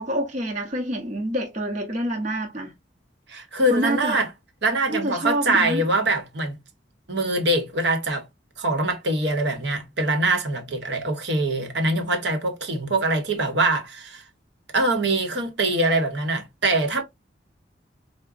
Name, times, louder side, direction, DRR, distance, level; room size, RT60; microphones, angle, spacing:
voice 1, 0.0-2.7 3.7-4.2 4.9-5.8, right 1 dB, 40° right, 0.9 m, -27 dB
voice 2, 3.3-4.3 4.6-6.5 7.1-8.2 8.6-14.2 14.7-17.0, right 2 dB, 65° right, 1.0 m, -23 dB
4.7 x 2.2 x 2.4 m
head